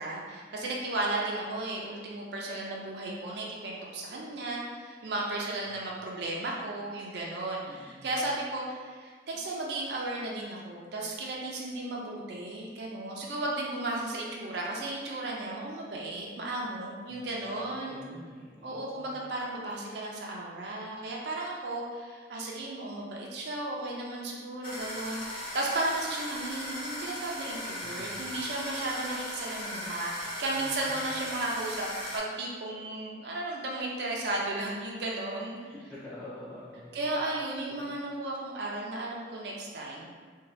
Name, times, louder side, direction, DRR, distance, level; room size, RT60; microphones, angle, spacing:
voice 1, 0.0-18.0 18.6-35.6 36.9-40.1, right 2 dB, 60° right, -3 dB, 0.4 m, -34 dB
voice 2, 7.7-8.2 17.1-17.4 17.7-19.2 27.8-28.3 30.6-31.2 35.6-37.1 37.7-37.9, left 1 dB, 5° left, -11 dB, 0.4 m, -48 dB
sound 1, 24.6-32.2, left 1 dB, 30° left, 0.8 m, -38 dB
2.7 x 2.2 x 3.0 m, 1.6 s
head